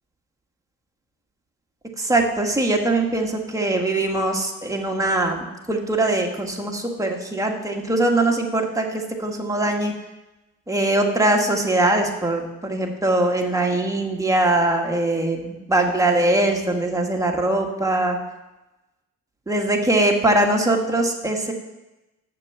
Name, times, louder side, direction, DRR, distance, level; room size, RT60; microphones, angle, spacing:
voice 1, 2.0-9.9 10.7-18.2 19.5-21.5, right 2 dB, 10° right, 1 dB, 1.6 m, -22 dB
6.9 x 6.8 x 7.1 m, 1.0 s
cardioid pair, 90°, 30 cm